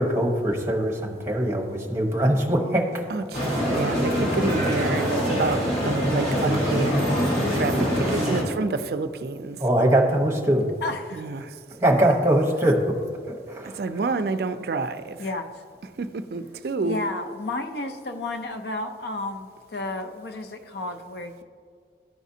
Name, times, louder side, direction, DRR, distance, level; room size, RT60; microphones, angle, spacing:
voice 1, 0.0-3.0 3.9-4.0 4.6-4.7 9.6-10.7 11.8-13.0 13.3-14.0, right 1 dB, 15° right, 1 dB, 0.9 m, -22 dB
voice 2, 3.1-7.1 7.5-9.6 11.1-11.6 13.6-15.3 16.0-17.0, right 3 dB, 60° right, 10 dB, 0.4 m, -29 dB
sound 1, 3.3-8.4, equal, 35° left, 1.8 m, -24 dB
voice 3, 4.3-4.8 10.8-11.3 15.2-15.6 16.8-21.4, left 2 dB, 65° left, 6 dB, 0.5 m, -32 dB
13.0 x 5.0 x 2.7 m, 2.1 s
head